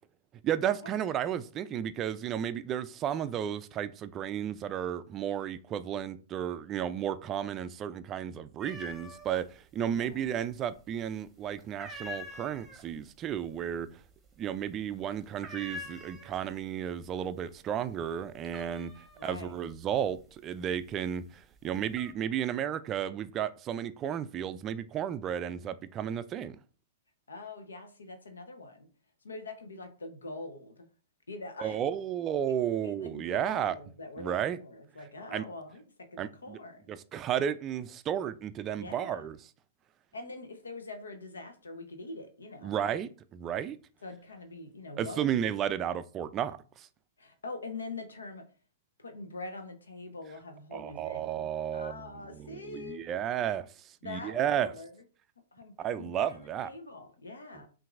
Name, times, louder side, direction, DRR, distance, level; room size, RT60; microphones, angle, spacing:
voice 1, 0.4-13.9 14.4-18.9 19.2-20.2 20.4-26.6 31.6-33.8 34.2-34.6 35.3-35.4 36.2-36.6 36.9-39.4 42.6-43.8 45.0-46.9 50.7-52.0 52.3-53.7 54.0-54.7 55.8-56.7, right 9 dB, 30° right, 0.3 m, -33 dB
sound 1, 8.6-9.4 9.7-10.5 10.9-11.2 11.6-16.7 17.0-17.5 17.9-21.0 21.5-22.1, left 1 dB, 10° right, 0.9 m, -45 dB
voice 2, 9.9-10.3 19.2-19.6 27.3-28.9 29.2-30.9 31.3-31.8 32.8-35.8 36.1-36.8 38.8-39.3 40.1-42.8 44.0-45.3 47.2-48.4 49.0-53.1 54.0-55.0 55.5-57.7, left 3 dB, 90° left, 0.8 m, -44 dB
5.7 x 2.6 x 2.4 m
hypercardioid pair, 115°, 0 cm